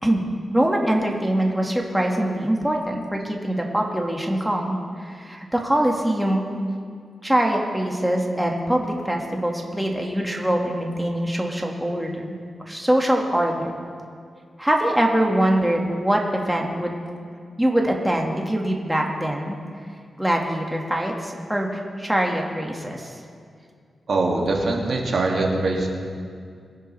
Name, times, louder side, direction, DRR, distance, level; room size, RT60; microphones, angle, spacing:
voice 1, 0.5-6.5 7.2-12.4 12.7-13.7 14.6-17.0 17.6-19.6 20.2-23.2, right 1 dB, 5° right, 0 dB, 1.7 m, -23 dB
voice 2, 24.1-25.9, right 2 dB, 60° right, -1 dB, 2.2 m, -22 dB
22.5 x 10.5 x 3.3 m, 2.2 s
cardioid pair, 75°, 0 cm